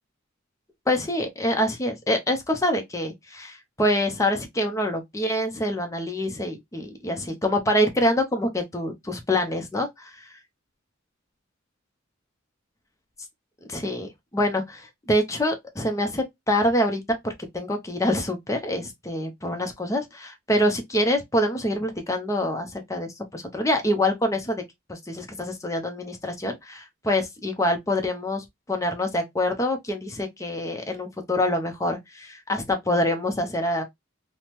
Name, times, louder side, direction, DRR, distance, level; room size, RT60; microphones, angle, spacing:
voice 1, 0.9-10.4 13.7-24.6 24.9-33.8, left 1 dB, 15° left, 0.6 m, -26 dB
3.4 x 2.1 x 2.8 m
head